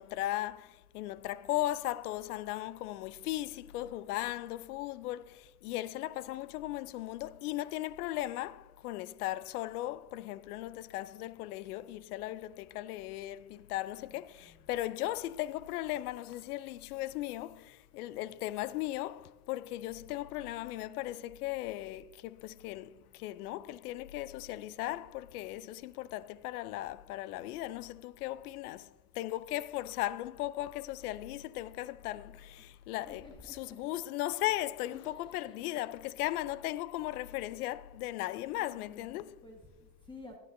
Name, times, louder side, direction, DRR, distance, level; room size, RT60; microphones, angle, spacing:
voice 1, 0.0-39.4, left 15 dB, 85° left, 0.6 m, -37 dB
voice 2, 14.1-14.6 32.6-33.8 34.9-35.6 38.5-40.4, left 2 dB, 10° left, 1.4 m, -54 dB
16.0 x 9.7 x 2.6 m
supercardioid pair, 115°, 44 cm